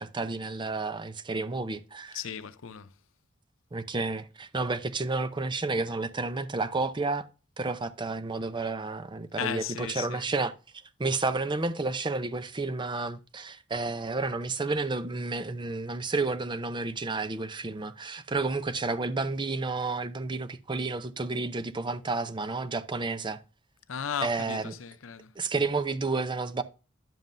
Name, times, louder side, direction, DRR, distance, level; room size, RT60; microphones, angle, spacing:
voice 1, 0.0-2.2 3.7-7.3 7.6-10.5 11.0-23.4 24.2-24.7 25.4-26.6, right 3 dB, 25° right, 0.6 m, -31 dB
voice 2, 2.1-2.9 9.4-10.3 23.9-25.3, left 7 dB, 80° left, 0.6 m, -36 dB
11.0 x 7.3 x 2.6 m
head